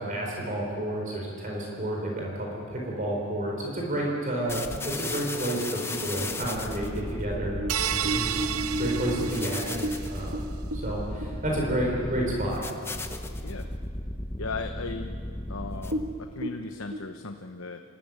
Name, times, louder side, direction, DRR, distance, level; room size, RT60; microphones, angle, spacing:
voice 1, 0.0-7.6 7.9-8.3 8.8-9.8 10.1-10.3 10.7-12.6, right 1 dB, 40° right, -2 dB, 4.4 m, -30 dB
sound 1, 4.5-16.3, left 1 dB, 10° left, 1.0 m, -35 dB
sound 2, 6.8-12.4 12.7-12.8 13.2-13.7 14.1-14.2 14.9-15.0 15.3-15.4 15.8-17.0, right 1 dB, 60° right, 1.4 m, -34 dB
sound 3, 7.7-10.2, right 10 dB, 85° right, 0.8 m, -31 dB
voice 2, 14.4-15.2 15.5-17.8, left 3 dB, 70° left, 6 dB, 0.9 m, -37 dB
27.0 x 15.0 x 9.6 m, 2.4 s
head